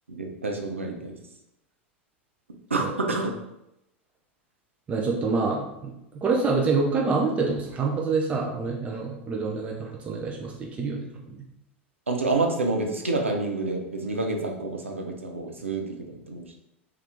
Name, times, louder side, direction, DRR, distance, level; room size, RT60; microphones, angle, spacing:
voice 1, 0.1-1.2 2.7-3.3 12.1-16.5, right 3 dB, 80° right, 2 dB, 0.5 m, -28 dB
voice 2, 4.9-11.4, right 4 dB, 20° right, -1 dB, 0.4 m, -27 dB
2.8 x 2.3 x 3.5 m, 0.87 s
figure-of-eight pair, 85°, 7 cm